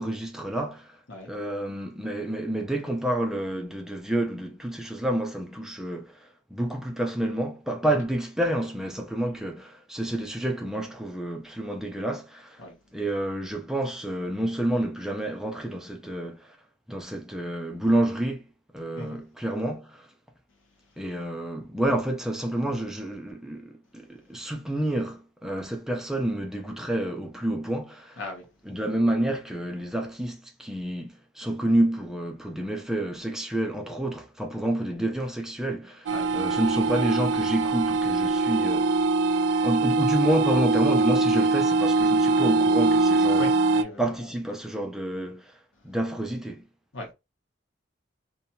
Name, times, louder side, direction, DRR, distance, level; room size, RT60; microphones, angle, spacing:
voice 1, 0.0-1.0 1.2-12.6 12.9-16.6 16.9-18.4 18.7-20.1 21.0-28.2 28.7-38.9 39.6-43.5 44.0-45.6 45.8-46.7, right 1 dB, 5° right, 0.4 m, -29 dB
sound 1, 36.1-43.8, right 3 dB, 65° right, 0.3 m, -22 dB
voice 2, 43.3-44.3 46.9-47.1, left 2 dB, 75° left, 0.8 m, -38 dB
2.8 x 2.2 x 2.7 m
head